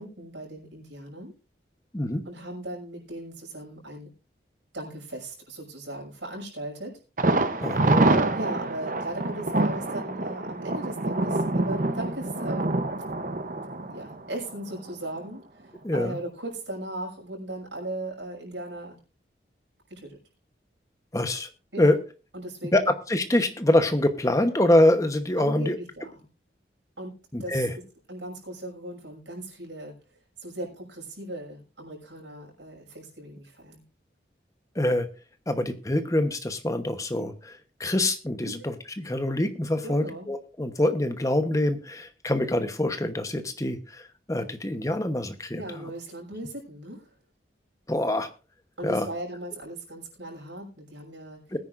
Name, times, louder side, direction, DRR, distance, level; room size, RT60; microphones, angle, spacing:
voice 1, 0.0-1.3 2.2-4.1 4.7-6.9 8.1-12.8 13.7-19.0 19.9-20.2 21.7-21.9 22.3-22.9 25.4-26.2 27.0-27.1 27.4-27.7 28.1-29.9 30.4-33.8 38.4-38.7 39.8-40.3 45.6-47.1 48.8-51.4, right 1 dB, 85° right, -1 dB, 6.1 m, -38 dB
Thunder, 7.2-14.9 15.2-15.3 15.8-15.9, right 2 dB, 45° right, 0.8 m, -26 dB
voice 2, 7.6-8.2 15.8-16.2 21.1-21.5 21.8-22.0 22.7-25.8 27.3-27.7 34.7-35.1 35.5-45.6 47.9-48.3 48.8-49.1 51.5-51.6, left 1 dB, 20° left, 8 dB, 1.0 m, -25 dB
21.0 x 9.7 x 2.6 m, 0.33 s
head